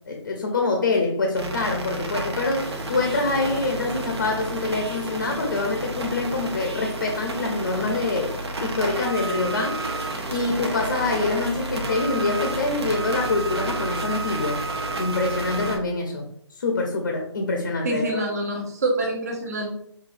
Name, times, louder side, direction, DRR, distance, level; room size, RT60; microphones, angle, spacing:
voice 1, 0.1-9.8 10.3-14.6 15.0-18.3, left 3 dB, 40° left, 2 dB, 0.7 m, -25 dB
sound 1, 1.3-15.8, right 2 dB, 60° right, 1.0 m, -30 dB
voice 2, 17.8-19.7, right 1 dB, 35° right, 1 dB, 0.9 m, -26 dB
5.9 x 2.6 x 2.6 m, 0.69 s
hypercardioid pair, 170°, 15 cm